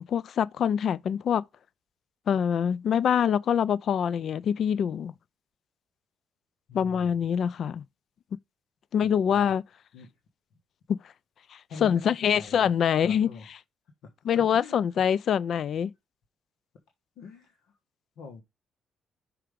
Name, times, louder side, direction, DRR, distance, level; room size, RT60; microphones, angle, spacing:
voice 1, 0.0-1.4 2.3-5.1 6.7-7.8 8.9-9.6 11.5-13.3 14.3-15.9, left 8 dB, 60° left, 0.3 m, -25 dB
voice 2, 6.7-7.2 9.0-9.5 9.9-10.1 11.7-13.5 14.0-15.1 17.2-17.7 18.2-18.4, left 4 dB, 85° left, 1.2 m, -45 dB
5.8 x 4.7 x 5.0 m
cardioid pair, 90°, 0 cm